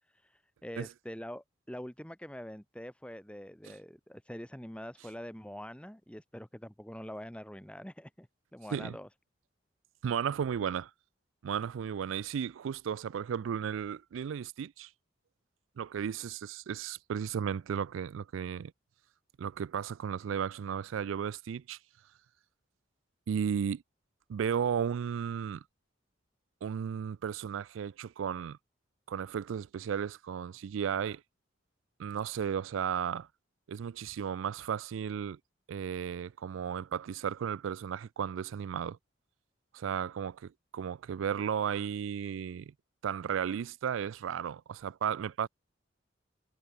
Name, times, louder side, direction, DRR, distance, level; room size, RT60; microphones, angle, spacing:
voice 1, 0.1-9.1, equal, 5° left, 3.0 m, -45 dB
voice 2, 10.0-10.9 11.4-14.9 15.8-18.7 19.4-21.8 23.3-23.8 24.3-25.6 26.6-28.6 29.1-31.2 32.0-33.3 33.7-35.4 35.7-39.0 39.7-42.7 43.0-45.5, right 8 dB, 90° right, 0.3 m, -34 dB
head